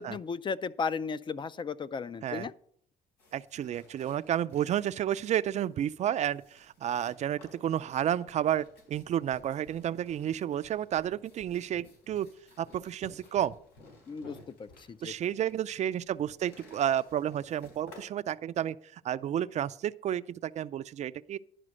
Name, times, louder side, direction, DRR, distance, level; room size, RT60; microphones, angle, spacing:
voice 1, 0.0-2.5 14.1-15.1, left 5 dB, 30° left, 0.4 m, -35 dB
sound 1, 3.2-18.0, left 2 dB, 90° left, 4.0 m, -60 dB
voice 2, 3.3-12.3 12.6-13.5 15.0-21.4, right 10 dB, 45° right, 0.4 m, -31 dB
sound 2, 7.7-15.9, left 2 dB, 70° left, 4.9 m, -57 dB
11.0 x 5.0 x 6.3 m
cardioid pair, 110°, 17 cm